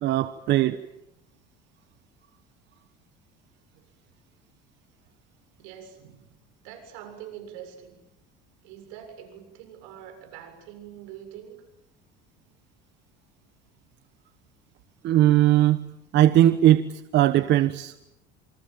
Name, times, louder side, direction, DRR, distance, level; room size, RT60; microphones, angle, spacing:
voice 1, 0.0-0.8 15.0-15.9 16.1-17.9, right 13 dB, 55° right, 12 dB, 1.2 m, -19 dB
voice 2, 5.6-6.3 6.6-8.0 8.6-11.6, right 9 dB, 85° right, 6 dB, 7.3 m, -44 dB
27.5 x 26.0 x 7.5 m, 0.86 s
supercardioid pair, 105°, 21 cm